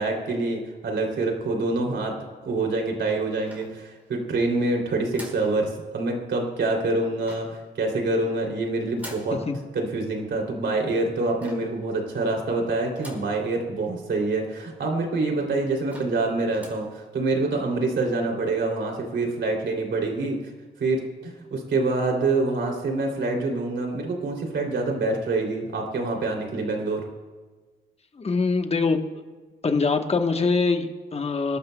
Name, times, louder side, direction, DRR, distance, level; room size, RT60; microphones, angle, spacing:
voice 1, 0.0-2.1 2.4-9.4 9.7-20.4 20.8-27.0, right 2 dB, 70° right, 1 dB, 3.0 m, -26 dB
sound 1, 3.5-4.2 5.1-5.5 7.2-7.7 9.0-9.4 11.4-11.8 13.0-13.4 13.9-14.0 14.2-14.3 15.0-15.1 15.5-15.6 15.9-16.2 16.5-16.9, equal, 10° right, 4.4 m, -43 dB
voice 2, 28.2-29.0 29.6-31.6, left 4 dB, 30° left, 5 dB, 1.1 m, -23 dB
27.5 x 12.0 x 2.3 m, 1.3 s
cardioid pair, 100°, 19 cm